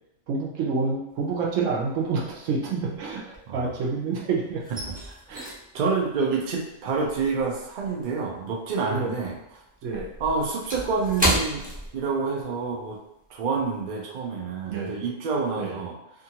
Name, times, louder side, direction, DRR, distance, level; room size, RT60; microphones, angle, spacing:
voice 1, 0.3-4.6 5.3-5.5 8.9-9.2 9.8-10.1 14.7-15.0 15.6-15.7, right 4 dB, 80° right, -2 dB, 1.0 m, -28 dB
sound 1, 1.2-1.7 2.0-4.0 4.3-9.0 9.2-12.5 12.9-13.0 13.5-13.8, right 1 dB, 10° right, 0.5 m, -32 dB
voice 2, 4.8-5.5 5.7-9.4 10.2-11.7 11.9-13.0 13.3-16.0, right 4 dB, 55° right, 0 dB, 0.6 m, -28 dB
2.7 x 2.5 x 2.8 m, 0.85 s
omnidirectional pair, 1.3 m